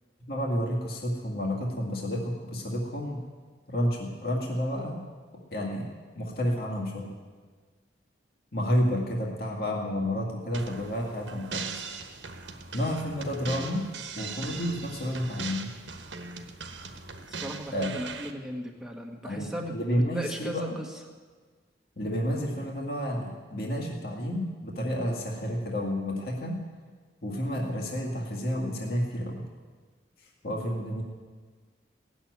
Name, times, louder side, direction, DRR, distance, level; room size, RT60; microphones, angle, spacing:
voice 1, 0.3-3.2 3.7-5.0 5.5-5.9 6.1-7.1 8.5-11.7 12.7-13.9 14.2-15.7 17.7-17.9 19.2-20.8 22.0-26.6 27.2-29.5 30.2-31.0, equal, 55° left, -2 dB, 2.1 m, -30 dB
sound 1, 10.5-18.3, right 5 dB, 85° right, 1.2 m, -40 dB
voice 2, 17.3-21.0, equal, 5° right, 0 dB, 1.5 m, -37 dB
17.5 x 7.3 x 9.6 m, 1.5 s
head